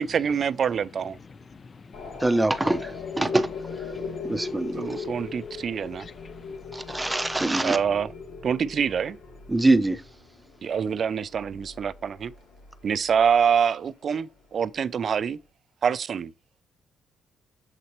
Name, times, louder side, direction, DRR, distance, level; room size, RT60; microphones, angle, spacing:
voice 1, 0.0-1.2 4.7-6.1 7.6-8.1 8.4-9.2 10.6-12.3 12.8-15.4 15.8-16.3, right 7 dB, 50° right, 0.4 m, -25 dB
voice 2, 1.1-2.2 3.9-4.6 4.9-7.0, left 4 dB, 35° left, 0.6 m, -51 dB
sound 1, 1.9-13.5, left 4 dB, 75° left, 2.9 m, -39 dB
voice 3, 2.2-3.5 4.3-5.0 6.7-7.8 9.5-10.0, right 2 dB, 15° right, 0.7 m, -24 dB
7.4 x 5.8 x 3.1 m
cardioid pair, 90°, 0 cm